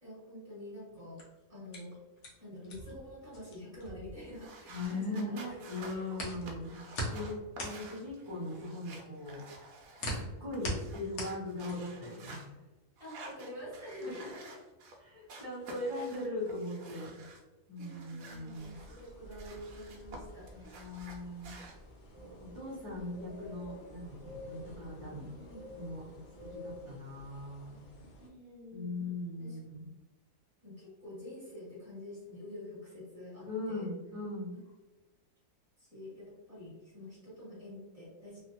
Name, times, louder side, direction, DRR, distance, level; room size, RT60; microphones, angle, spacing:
voice 1, 0.0-1.2 1.5-2.0 2.4-6.0 13.0-14.6 15.9-16.1 17.8-20.5 25.1-25.7 28.2-29.1 29.4-29.6 30.6-33.9 34.5-34.6 35.8-38.4, left 1 dB, 25° right, -9 dB, 1.5 m, -47 dB
sound 1, 1.0-5.2 5.5-12.0, equal, 75° left, 1.3 m, -41 dB
sound 2, 4.3-10.2 10.5-12.5 13.0-15.0 15.3-17.4 17.8-20.2 20.5-21.7, right 2 dB, 75° right, 1.1 m, -51 dB
voice 2, 4.7-6.8 7.0-9.4 10.0-12.5 14.0-14.1 15.0-17.1 17.7-18.8 20.5-21.6 22.5-25.2 25.7-26.0 26.4-27.8 28.7-29.9 33.4-34.5, left 2 dB, 25° left, -10 dB, 0.8 m, -40 dB
sound 3, 18.5-28.3, left 1 dB, 60° left, 0.9 m, -51 dB
3.2 x 2.3 x 2.8 m, 1.1 s
omnidirectional pair, 1.6 m